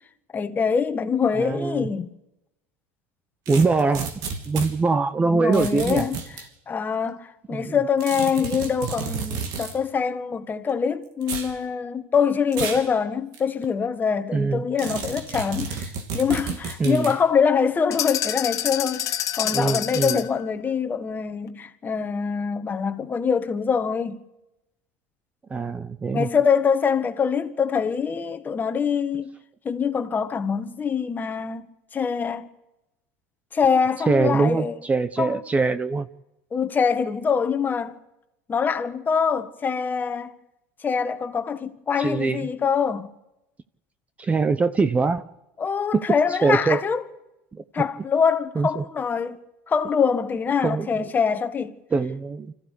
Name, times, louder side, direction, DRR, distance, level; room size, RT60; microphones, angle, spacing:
voice 1, 0.3-2.1 5.2-6.2 6.7-19.1 19.3-24.2 26.1-29.3 29.6-31.6 31.9-32.5 33.5-34.8 35.2-35.4 36.5-38.0 38.5-40.3 40.8-43.1 45.6-47.0 47.7-49.4 49.7-51.7, left 6 dB, 25° left, 1.6 m, -24 dB
voice 2, 1.3-1.9 3.5-4.1 4.5-6.0 7.5-7.8 14.3-14.6 16.8-17.1 19.5-20.2 25.5-26.3 34.1-36.1 42.0-42.5 44.2-45.2 45.9-46.0 46.4-46.8 47.5-47.6 48.6-48.8 50.6-51.1 51.9-52.5, right 4 dB, 20° right, 0.8 m, -23 dB
sound 1, 3.5-4.7 5.5-6.5 8.0-9.8 11.2-11.5 12.5-12.9 13.3-13.4 14.8-17.2, right 6 dB, 60° right, 3.2 m, -32 dB
sound 2, 17.9-20.4, left 12 dB, 45° left, 1.7 m, -27 dB
25.5 x 15.0 x 8.4 m
supercardioid pair, 110°, 7 cm